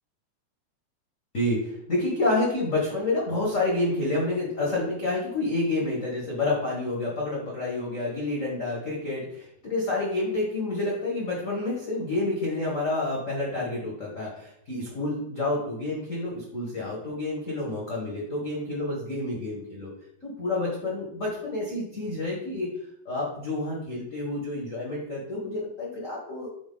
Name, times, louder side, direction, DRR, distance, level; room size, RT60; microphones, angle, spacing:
voice 1, 1.3-19.9 20.2-22.7 23.0-26.5, left 2 dB, 80° left, -4 dB, 0.7 m, -29 dB
6.1 x 4.1 x 3.7 m, 0.76 s
omnidirectional pair, 3.4 m